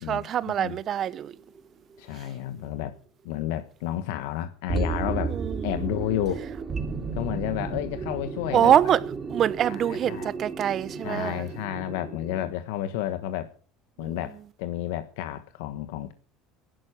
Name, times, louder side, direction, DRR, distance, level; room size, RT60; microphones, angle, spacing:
voice 1, 0.1-1.3 5.3-5.7 8.5-9.0 9.3-11.4 14.0-14.2, right 10 dB, 45° right, 0.9 m, -24 dB
sound 1, 1.0-1.6 2.1-2.2 4.7-12.5, right 5 dB, 30° right, 2.9 m, -33 dB
voice 2, 2.0-2.9 3.2-5.4 5.6-6.4 7.1-8.7 9.7-10.3 11.0-13.5 14.0-16.1, left 12 dB, 80° left, 1.3 m, -31 dB
15.5 x 12.0 x 5.8 m
supercardioid pair, 90°, 0 cm